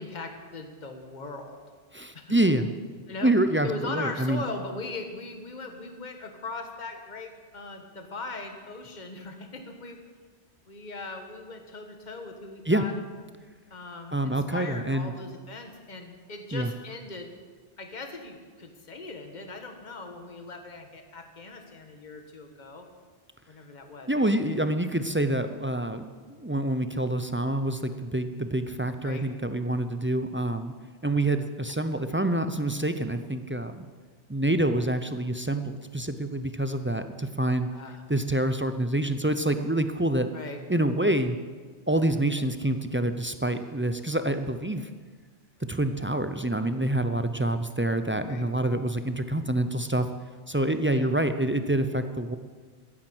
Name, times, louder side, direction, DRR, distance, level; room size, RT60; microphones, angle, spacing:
voice 1, 0.0-1.6 2.1-2.3 3.1-3.3 3.6-10.0 10.7-12.9 13.7-17.3 17.8-22.9 23.5-24.6 29.0-29.2 34.5-34.7 37.7-38.0 40.3-40.6 48.2-48.5 50.8-51.1, left 3 dB, 40° left, 5 dB, 1.6 m, -39 dB
voice 2, 1.9-2.7 3.2-4.4 12.7-12.8 14.1-15.1 16.5-16.7 24.1-30.7 31.0-33.9 34.3-37.7 38.1-40.3 40.7-41.4 41.9-44.9 45.7-50.1 50.5-52.4, right 1 dB, 15° right, 9 dB, 0.4 m, -27 dB
13.5 x 10.0 x 7.9 m, 1.5 s
omnidirectional pair, 1.2 m